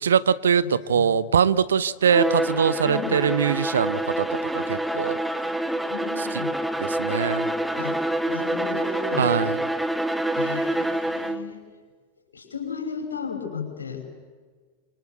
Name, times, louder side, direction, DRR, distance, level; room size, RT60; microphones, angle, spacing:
voice 1, 0.0-4.3 4.5-5.2 6.2-6.4 6.8-7.5 9.2-9.6, right 7 dB, 65° right, 18 dB, 0.8 m, -22 dB
voice 2, 0.6-1.1 2.8-3.1 5.9-6.5 7.8-8.0 8.3-9.3 10.3-11.6 12.3-14.0, left 5 dB, 75° left, 3 dB, 5.8 m, -34 dB
Bowed string instrument, 2.0-11.5, right 1 dB, 5° right, 1.3 m, -27 dB
26.5 x 23.5 x 8.0 m, 1.5 s
figure-of-eight pair, 90°, 0 cm